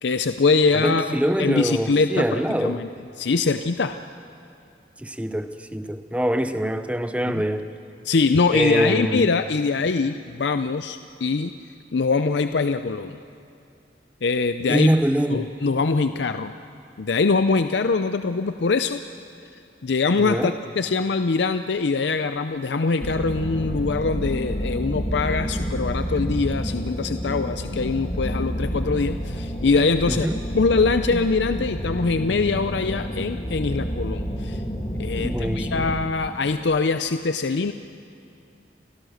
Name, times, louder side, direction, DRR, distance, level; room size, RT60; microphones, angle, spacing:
voice 1, 0.0-1.1 1.4-2.9 3.2-4.0 7.3-7.4 8.0-11.5 11.9-13.2 14.2-14.9 15.3-16.5 17.0-19.0 19.8-30.3 30.5-34.6 35.0-37.7, left 4 dB, 75° left, 9 dB, 0.5 m, -23 dB
voice 2, 0.7-2.8 5.0-7.7 8.5-9.3 14.7-15.5 20.2-20.6 30.1-30.4 35.2-35.9, equal, 5° right, 10 dB, 0.7 m, -24 dB
sound 1, 23.0-36.0, equal, 35° left, 2.7 m, -29 dB
29.0 x 17.5 x 6.5 m, 2.5 s
head